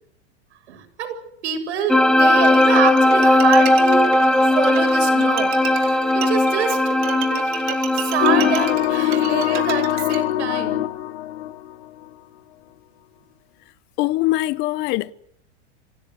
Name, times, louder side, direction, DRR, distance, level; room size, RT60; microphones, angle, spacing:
voice 1, 0.7-1.1 1.4-4.1 4.4-6.8 7.4-7.5 7.9-10.9, right 7 dB, 75° right, 7.8 m, -26 dB
sound 1, 1.9-8.7, left 1 dB, ahead, 0.9 m, -17 dB
Bowed string instrument, 2.4-10.2, right 13 dB, 40° right, 3.4 m, -33 dB
sound 2, 8.2-12.1, left 13 dB, 65° left, 2.8 m, -22 dB
voice 2, 14.0-15.1, left 17 dB, 30° left, 0.9 m, -22 dB
26.5 x 17.0 x 8.3 m
supercardioid pair, 150°, 34 cm